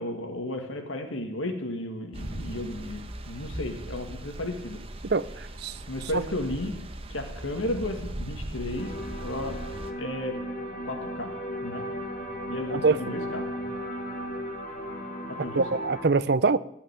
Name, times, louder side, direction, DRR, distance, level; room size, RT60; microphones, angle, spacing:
voice 1, 0.0-4.8 5.9-6.7 7.1-9.6 10.0-10.4 10.8-11.3 11.6-11.8 12.5-13.5 15.3-15.8, left 1 dB, 80° left, 5 dB, 2.0 m, -34 dB
sound 1, 2.1-9.9, right 1 dB, 30° right, 1.0 m, -39 dB
voice 2, 5.1-5.7 6.1-6.2 12.7-13.0 15.5-16.6, right 4 dB, 55° right, 17 dB, 0.5 m, -24 dB
sound 2, 8.8-16.1, equal, 45° left, 2.0 m, -35 dB
16.0 x 5.8 x 9.8 m, 0.78 s
head